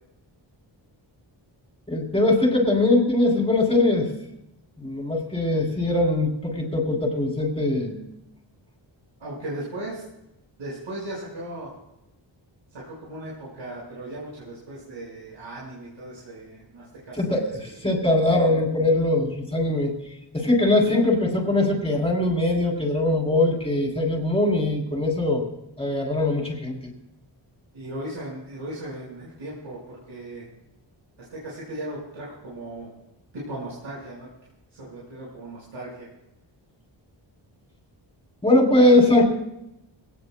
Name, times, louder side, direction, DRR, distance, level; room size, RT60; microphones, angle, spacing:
voice 1, 1.9-4.1 4.8-8.0 17.2-20.0 20.3-25.4 25.8-26.9 38.4-39.2, left 2 dB, 10° left, 0 dB, 3.3 m, -21 dB
voice 2, 9.2-10.0 10.6-11.7 12.7-17.4 20.8-21.1 27.7-30.5 31.3-32.9 33.3-34.3 34.7-36.1, right 1 dB, 90° right, -6 dB, 5.3 m, -37 dB
24.5 x 18.0 x 2.2 m, 0.86 s
wide cardioid pair, 170°, 46 cm